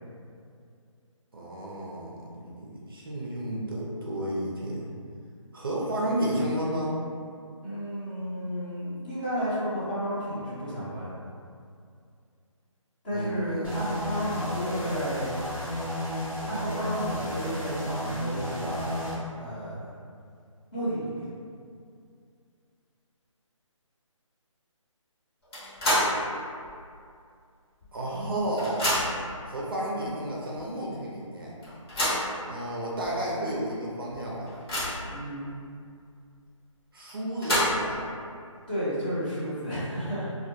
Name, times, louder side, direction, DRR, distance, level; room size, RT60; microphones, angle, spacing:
voice 1, 1.3-4.9 5.5-7.0 13.1-13.9 27.9-28.9 29.5-31.5 32.4-34.5 36.9-38.1, right 1 dB, 45° right, -4 dB, 0.4 m, -32 dB
voice 2, 7.6-11.1 13.0-15.4 16.4-19.9 20.7-21.2 35.1-35.5 38.7-40.3, equal, 15° left, -12 dB, 0.5 m, -32 dB
sound 1, 13.6-19.2, left 1 dB, 80° left, 0.8 m, -33 dB
sound 2, 25.5-26.2 26.6-26.7 27.8-27.9 28.2-29.3 30.1-30.2 30.6-30.7 31.6-32.3 33.0-33.1 33.5-33.6 34.1-35.1 37.1-38.0, equal, 45° left, 1.0 m, -28 dB
2.1 x 2.1 x 2.8 m, 2.3 s
figure-of-eight pair, 160°, 17 cm